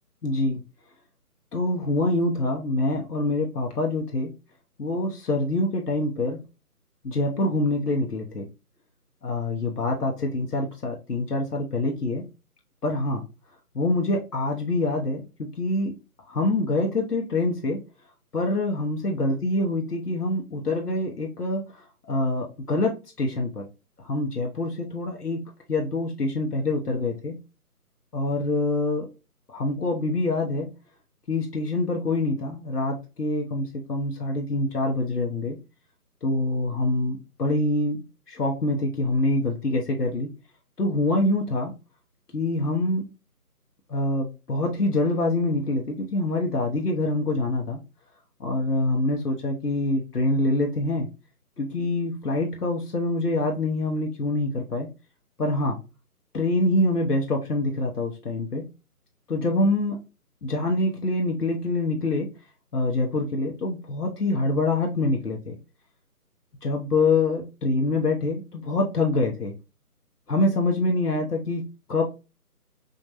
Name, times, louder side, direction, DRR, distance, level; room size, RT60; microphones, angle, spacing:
voice 1, 0.2-0.6 1.5-4.3 4.8-6.4 7.0-8.4 9.2-12.2 12.8-13.2 13.7-15.9 16.3-17.8 18.3-21.6 22.1-22.9 23.2-23.6 24.0-27.3 28.1-29.1 29.5-30.7 31.3-35.6 36.2-38.0 38.3-40.3 40.8-41.7 42.3-43.0 43.9-47.8 48.4-51.1 51.6-54.9 55.4-55.8 56.3-58.6 59.3-60.0 60.4-62.3 62.7-65.6 66.6-69.5 70.3-72.0, left 2 dB, 80° left, 0 dB, 1.1 m, -25 dB
5.2 x 2.3 x 2.6 m, 0.29 s
figure-of-eight pair, 155°, 46 cm